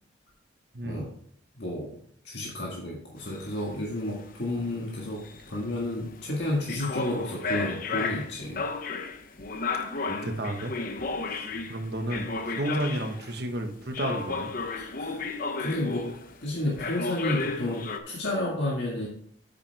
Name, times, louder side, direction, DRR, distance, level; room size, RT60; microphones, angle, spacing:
voice 1, 0.7-1.0 10.1-10.7 11.3-14.5, right 1 dB, 55° right, 5 dB, 1.3 m, -32 dB
voice 2, 1.6-1.9 2.2-8.6 14.8-15.2 15.6-16.1 16.4-19.1, left 1 dB, 60° left, -3 dB, 1.9 m, -31 dB
sound 1, 3.2-13.4 13.9-16.4 16.8-18.0, left 4 dB, 45° left, 0.8 m, -34 dB
8.9 x 8.1 x 3.5 m, 0.63 s
head